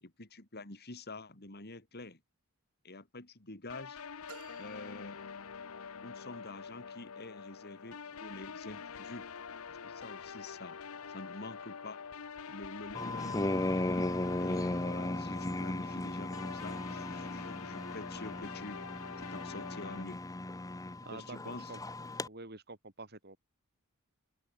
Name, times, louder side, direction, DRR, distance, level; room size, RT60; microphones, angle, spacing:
voice 1, 0.0-2.2 2.8-4.0 4.6-5.2 6.0-9.3 9.7-10.8 11.1-12.0 12.5-13.5 14.4-18.8 19.2-20.2 21.1-21.7, left 2 dB, 45° left, 2.5 m, -47 dB
sound 1, 3.7-20.1, left 6 dB, 70° left, 0.8 m, -46 dB
sound 2, 4.3-5.9, right 5 dB, 75° right, 3.3 m, -56 dB
sound 3, 12.9-22.3, left 1 dB, 15° left, 0.8 m, -36 dB
voice 2, 21.0-21.8 22.2-23.4, right 3 dB, 45° right, 5.2 m, -48 dB
open air
head